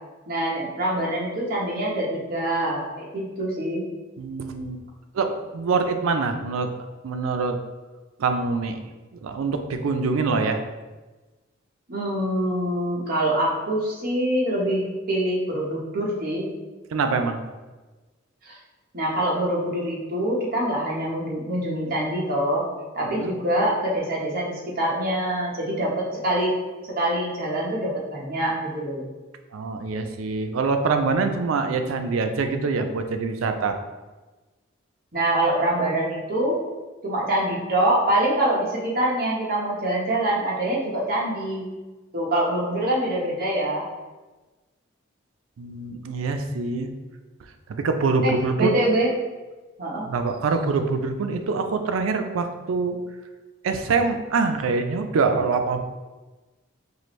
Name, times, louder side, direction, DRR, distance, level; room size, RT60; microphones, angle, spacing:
voice 1, 0.3-3.9 11.9-16.5 18.4-18.6 18.9-22.6 22.9-26.5 27.0-29.0 35.1-36.6 37.0-41.7 42.1-43.9 48.2-49.1 49.8-50.1, right 1 dB, 45° right, -4 dB, 0.9 m, -25 dB
voice 2, 4.2-4.8 5.1-6.7 7.0-7.6 8.2-8.8 9.2-10.6 16.9-17.4 23.1-23.3 29.5-33.8 45.6-46.9 47.7-48.7 50.0-53.0 53.6-55.8, right 4 dB, 80° right, 7 dB, 0.4 m, -24 dB
4.7 x 2.5 x 3.1 m, 1.2 s
head